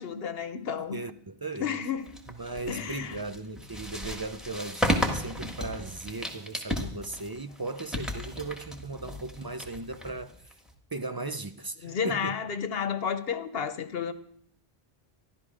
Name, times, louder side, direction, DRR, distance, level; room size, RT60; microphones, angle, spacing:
voice 1, 0.0-1.0 1.6-2.1 2.7-3.2 11.8-14.1, left 7 dB, 70° left, 1.1 m, -32 dB
voice 2, 0.9-1.7 2.4-10.3 10.9-12.3, right 3 dB, 35° right, 0.4 m, -37 dB
sound 1, 2.1-10.7, equal, ahead, 1.6 m, -34 dB
13.5 x 12.0 x 4.9 m
omnidirectional pair, 1.1 m